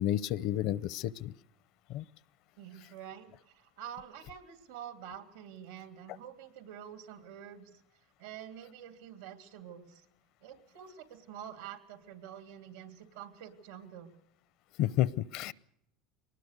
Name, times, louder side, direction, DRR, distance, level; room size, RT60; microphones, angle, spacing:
voice 1, 0.0-1.3 1.9-2.0 14.8-15.5, left 13 dB, 60° left, 20 dB, 0.7 m, -30 dB
voice 2, 2.6-7.8 8.2-10.0 10.4-14.1, right 9 dB, 85° right, 7 dB, 2.9 m, -47 dB
23.5 x 19.0 x 6.7 m, 0.77 s
supercardioid pair, 110°, 0 cm